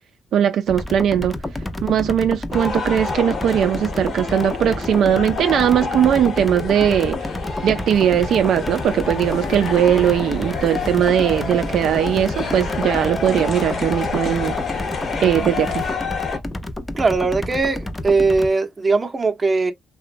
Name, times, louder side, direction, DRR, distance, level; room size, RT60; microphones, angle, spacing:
voice 1, 0.3-1.3 1.8-7.2 7.6-14.6 15.2-15.8, right 9 dB, 70° right, 0.3 m, -19 dB
sound 1, 0.7-18.5, left 1 dB, 15° left, 0.5 m, -30 dB
sound 2, 2.5-16.4, left 4 dB, 50° left, 1.0 m, -29 dB
sound 3, 7.9-15.9, left 6 dB, 75° left, 0.7 m, -37 dB
voice 2, 17.0-19.7, right 3 dB, 25° right, 0.6 m, -19 dB
2.9 x 2.1 x 2.4 m
cardioid pair, 100°, 0 cm